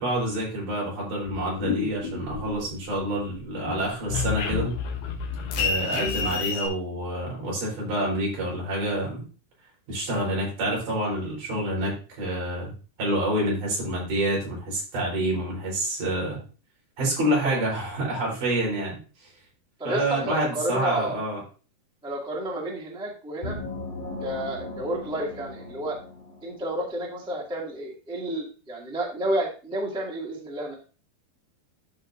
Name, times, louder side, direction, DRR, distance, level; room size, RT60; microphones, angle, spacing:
voice 1, 0.0-4.7 5.6-9.2 9.9-12.7 13.0-16.4 17.0-19.0 19.8-21.4, right 1 dB, 55° right, -3 dB, 5.3 m, -27 dB
sound 1, 1.3-3.0 3.3-6.7, left 5 dB, 65° left, 2.5 m, -29 dB
voice 2, 6.0-6.4 17.4-17.6 19.8-21.2 22.0-23.6 24.2-26.0 26.4-30.7, right 1 dB, 5° right, -4 dB, 0.6 m, -31 dB
Magyar gong, 23.4-27.0, left 2 dB, 20° left, 1.3 m, -37 dB
13.0 x 5.0 x 2.6 m, 0.36 s
omnidirectional pair, 4.7 m